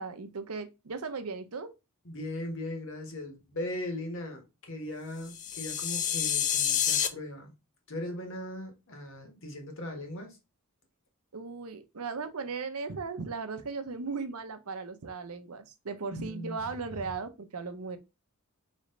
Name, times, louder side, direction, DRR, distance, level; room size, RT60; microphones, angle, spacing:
voice 1, 0.0-1.7 11.3-18.0, right 4 dB, 80° right, 0.7 m, -37 dB
voice 2, 2.0-7.5 7.9-10.4 16.1-16.6, left 1 dB, 60° left, 1.5 m, -38 dB
sound 1, 5.3-7.1, left 9 dB, 35° left, 0.5 m, -28 dB
4.2 x 3.2 x 3.8 m
head